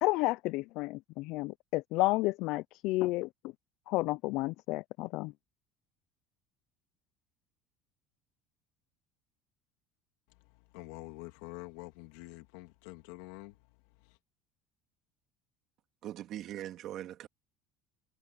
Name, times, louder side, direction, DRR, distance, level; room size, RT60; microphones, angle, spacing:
voice 1, 0.0-3.5 3.9-5.3, left 20 dB, 55° left, 0.3 m, -31 dB
voice 2, 10.3-14.2, left 21 dB, 90° left, 2.7 m, -48 dB
voice 3, 16.0-17.3, right 12 dB, 45° right, 1.9 m, -41 dB
cardioid pair, 170°, 0 cm